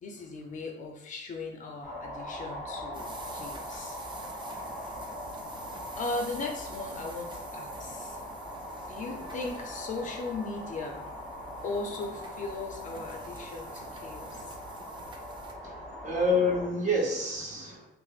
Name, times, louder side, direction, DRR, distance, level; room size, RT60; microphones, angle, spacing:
voice 1, 0.0-4.0 6.0-8.2 8.9-11.1 11.6-14.6, left 3 dB, 40° left, 2 dB, 0.6 m, -38 dB
sound 1, 1.8-16.7, equal, 5° left, 0.8 m, -41 dB
sound 2, 2.9-15.5, right 3 dB, 25° right, 0.4 m, -50 dB
voice 2, 15.6-17.9, left 1 dB, 40° right, -3 dB, 1.0 m, -28 dB
5.7 x 2.0 x 2.4 m, 0.82 s
cardioid pair, 155°, 19 cm